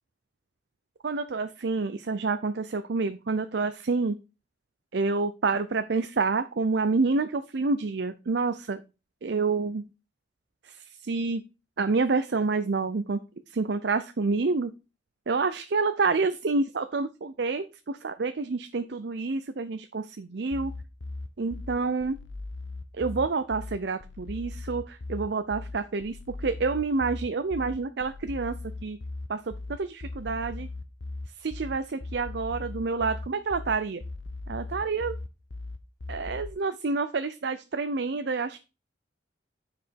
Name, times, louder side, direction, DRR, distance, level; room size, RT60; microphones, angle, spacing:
voice 1, 1.0-4.1 4.9-8.8 9.2-9.8 10.6-11.4 11.8-13.2 13.5-14.7 15.3-20.7 21.4-22.2 22.9-28.5 28.8-29.0 29.3-30.7 31.4-34.0 34.5-35.2 36.1-38.6, right 4 dB, 60° right, 10 dB, 0.5 m, -28 dB
sound 1, 20.5-36.5, left 2 dB, 85° left, 0.9 m, -38 dB
9.3 x 5.0 x 5.2 m, 0.30 s
head